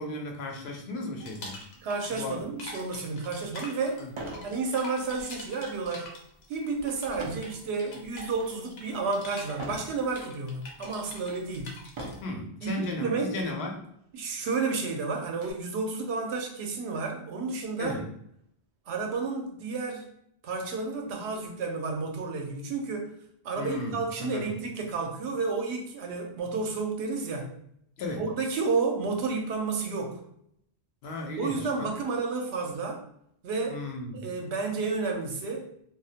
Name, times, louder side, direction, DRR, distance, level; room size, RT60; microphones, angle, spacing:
voice 1, 0.0-1.6 2.1-2.3 4.0-4.1 12.2-13.8 17.8-18.1 23.6-24.5 28.0-28.2 31.0-31.9 33.7-34.3, left 2 dB, 75° left, 1 dB, 0.8 m, -35 dB
sound 1, 1.2-2.3 2.6-12.2, left 2 dB, 50° left, 0.6 m, -45 dB
voice 2, 1.8-4.0 4.4-6.1 6.5-11.7 12.6-13.4 14.1-17.9 18.9-20.1 20.4-23.1 23.4-27.5 28.2-30.2 31.4-33.0 33.4-33.8 34.1-35.7, right 4 dB, 85° right, 2 dB, 0.8 m, -31 dB
sound 2, 4.1-4.5 5.0-5.3 7.2-7.6 8.2-8.6 9.6-9.9 10.7-10.8 11.9-12.4 13.4-13.5 13.8-13.9 14.4-15.5, right 2 dB, 55° right, 0.3 m, -39 dB
2.3 x 2.0 x 2.6 m, 0.72 s
omnidirectional pair, 1.1 m